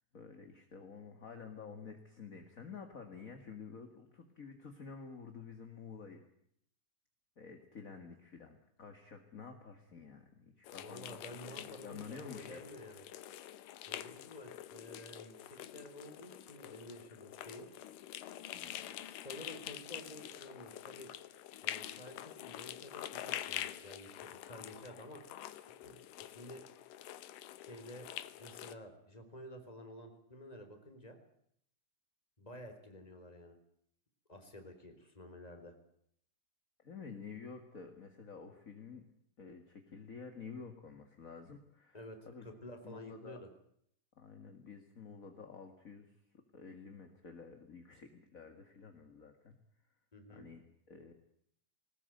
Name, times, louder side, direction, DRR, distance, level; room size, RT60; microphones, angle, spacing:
voice 1, 0.1-6.2 7.4-11.2 11.5-12.7 18.5-18.8 36.8-39.0 39.4-42.0 42.3-42.5 42.8-43.4 44.2-49.6 50.3-51.1, left 5 dB, 30° left, 5 dB, 1.8 m, -50 dB
sound 1, 10.6-28.7, left 12 dB, 90° left, 2.7 m, -46 dB
voice 2, 10.8-13.0 13.9-17.7 19.0-21.1 21.6-25.2 25.8-26.6 27.6-28.1 28.4-31.2 32.4-33.6 34.3-35.7 41.9-43.5 50.1-50.5, left 1 dB, 10° left, 5 dB, 3.7 m, -51 dB
21.0 x 19.5 x 9.3 m, 0.70 s
omnidirectional pair, 3.7 m